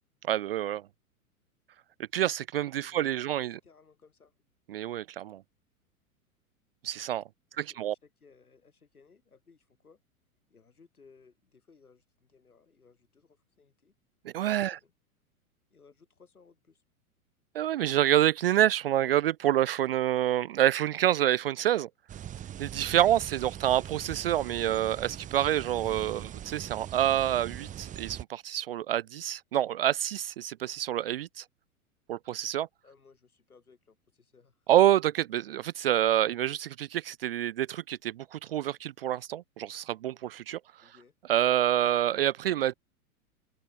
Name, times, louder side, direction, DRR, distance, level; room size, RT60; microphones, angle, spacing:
voice 1, 0.3-0.8 2.1-3.5 4.7-5.4 6.8-7.2 7.6-7.9 14.3-14.8 17.5-21.9 22.6-31.4 32.1-32.7 34.7-40.6 41.3-42.7, right 12 dB, 45° right, 0.4 m, -27 dB
voice 2, 2.7-4.4 7.5-10.0 10.5-14.0 14.6-14.9 15.7-16.8 32.8-34.7 40.8-41.1, left 5 dB, 75° left, 6.5 m, -60 dB
sound 1, 22.1-28.2, right 10 dB, 15° right, 1.3 m, -41 dB
open air
figure-of-eight pair, 100°, 44 cm